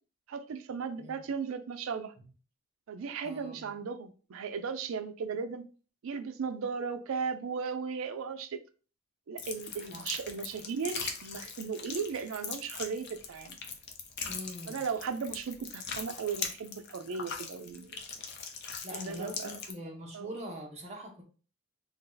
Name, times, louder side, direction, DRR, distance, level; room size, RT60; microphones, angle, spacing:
voice 1, 0.3-2.1 2.9-5.7 6.0-8.6 9.3-13.6 14.7-18.0 18.9-19.6 20.1-20.3, right 5 dB, 65° right, 9 dB, 0.4 m, -36 dB
voice 2, 3.2-3.8 9.9-10.1 14.3-14.8 18.8-21.2, equal, 30° right, 1 dB, 0.7 m, -43 dB
sound 1, 9.4-19.7, left 6 dB, 50° left, 0.5 m, -41 dB
2.7 x 2.3 x 3.7 m, 0.38 s
head